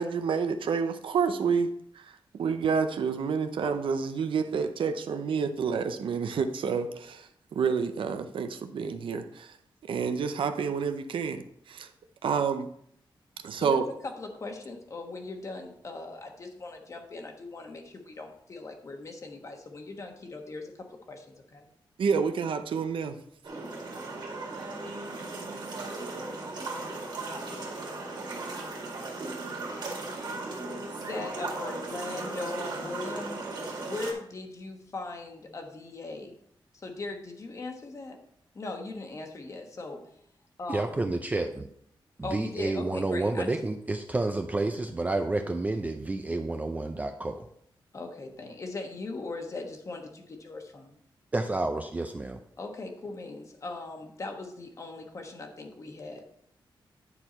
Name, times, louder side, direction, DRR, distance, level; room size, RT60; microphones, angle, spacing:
voice 1, 0.0-9.6 9.8-11.9 12.2-12.7 13.4-13.8 22.0-23.2, right 6 dB, 75° right, 9 dB, 0.7 m, -29 dB
voice 2, 13.6-21.7 31.0-36.3 36.7-38.2 38.5-40.0 40.6-40.9 42.2-43.6 47.9-51.0 52.6-56.2, left 3 dB, 35° left, 3 dB, 1.2 m, -39 dB
sound 1, 23.4-34.1, right 3 dB, 55° right, 2.1 m, -37 dB
voice 3, 40.7-41.5 42.2-47.5 51.3-52.4, right 2 dB, 20° right, 6 dB, 0.4 m, -30 dB
10.0 x 4.6 x 4.3 m, 0.69 s
wide cardioid pair, 160°, 9 cm